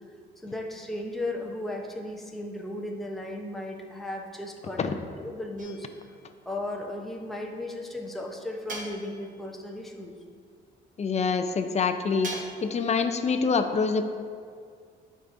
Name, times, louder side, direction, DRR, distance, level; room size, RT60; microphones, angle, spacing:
voice 1, 0.4-5.9 6.5-10.1, left 1 dB, ahead, 0 dB, 0.8 m, -35 dB
sound 1, 5.6-6.2 8.7-9.5 12.2-12.9, right 1 dB, 40° right, 1.3 m, -40 dB
voice 2, 11.0-12.3 12.6-14.1, left 5 dB, 35° left, 7 dB, 0.6 m, -25 dB
12.0 x 5.0 x 2.6 m, 2.2 s
cardioid pair, 90°, 20 cm